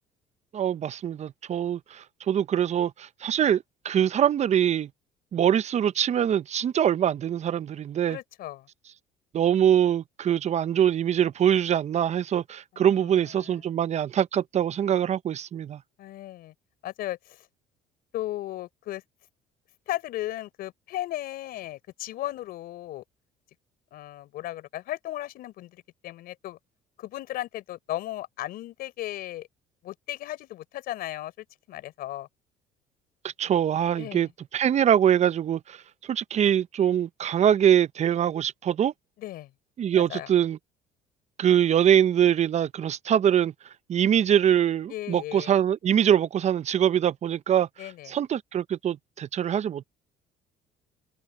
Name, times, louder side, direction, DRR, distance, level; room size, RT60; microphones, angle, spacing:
voice 1, 0.5-4.9 5.3-8.2 9.3-15.8 33.4-35.8 36.1-38.9 39.8-40.6 41.4-43.5 43.9-47.7 48.1-49.8, right 9 dB, 45° right, 0.8 m, -23 dB
voice 2, 8.1-8.7 12.7-13.1 13.4-13.6 16.0-16.5 16.8-17.5 18.1-19.0 19.9-23.0 23.9-26.6 27.0-29.5 29.8-32.3 34.0-34.3 39.2-39.5 40.1-40.3 44.9-45.5 47.8-48.2, left 14 dB, 70° left, 4.4 m, -36 dB
open air
supercardioid pair, 80°, 16 cm